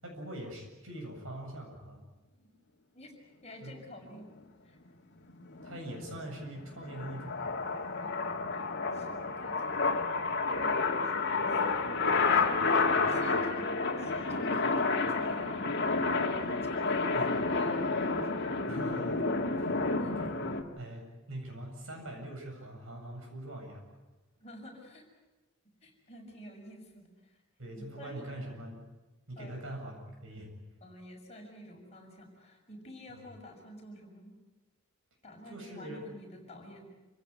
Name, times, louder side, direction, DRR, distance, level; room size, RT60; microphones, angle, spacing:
voice 1, 0.0-2.1 3.6-3.8 5.6-7.5 17.1-17.3 18.7-19.3 19.5-19.8 20.1-20.4 20.8-23.9 27.6-28.8 29.3-30.6 33.1-33.2 35.5-36.0, right 1 dB, 70° right, 2 dB, 7.6 m, -43 dB
voice 2, 3.4-4.3 4.6-4.8 7.7-8.2 8.5-11.6 12.1-12.7 13.1-16.1 16.6-18.4 20.0-20.1 24.4-25.0 25.8-27.4 27.7-28.4 29.4-29.7 30.8-34.3 35.2-36.9, equal, 30° left, 0 dB, 6.6 m, -49 dB
sound 1, 5.3-20.6, left 3 dB, 55° left, 2.5 m, -30 dB
28.0 x 16.0 x 9.9 m, 1.1 s
head